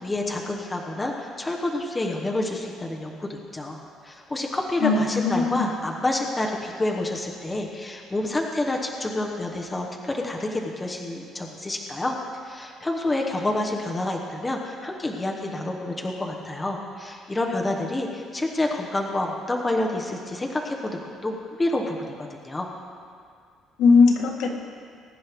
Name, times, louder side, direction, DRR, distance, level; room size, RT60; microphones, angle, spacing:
voice 1, 0.0-12.2 12.4-22.7, left 2 dB, 10° left, 0 dB, 1.0 m, -28 dB
voice 2, 4.8-5.7 23.8-24.6, left 4 dB, 75° left, 1 dB, 1.7 m, -19 dB
21.5 x 9.9 x 3.6 m, 2.2 s
cardioid pair, 175°, 0 cm